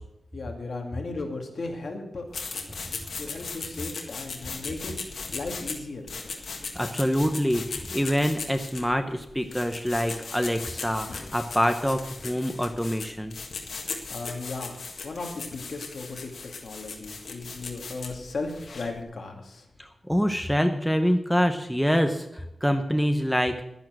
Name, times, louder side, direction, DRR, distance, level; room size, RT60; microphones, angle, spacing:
voice 1, 0.3-2.2 2.5-4.9 5.3-6.0 14.1-14.7 15.0-16.3 16.6-19.6, left 3 dB, 55° left, 2 dB, 2.3 m, -36 dB
sound 1, 2.3-19.0, left 4 dB, 75° left, 1.7 m, -38 dB
voice 2, 6.7-13.4 19.8-23.6, equal, ahead, 6 dB, 0.8 m, -25 dB
11.5 x 11.0 x 6.3 m, 0.84 s
wide cardioid pair, 160°, 0 cm